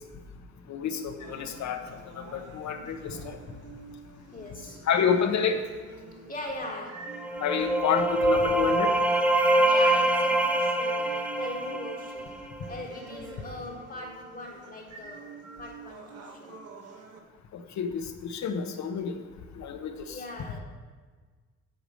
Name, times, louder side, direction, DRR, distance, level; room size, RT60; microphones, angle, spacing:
voice 1, 0.7-1.8 2.1-3.4 4.9-5.6 7.4-8.9 17.5-19.2 19.6-20.2, left 7 dB, 65° left, 7 dB, 1.1 m, -29 dB
sound 1, 1.2-17.2, right 4 dB, 55° right, 1.4 m, -47 dB
voice 2, 3.6-4.0 4.3-4.9 6.3-7.2 9.6-12.4 12.7-16.6 20.0-20.6, left 2 dB, 30° left, -4 dB, 1.5 m, -40 dB
sound 2, 7.1-12.8, right 1 dB, 5° right, 0.7 m, -25 dB
8.7 x 4.9 x 7.7 m, 1.5 s
cardioid pair, 90°, 30 cm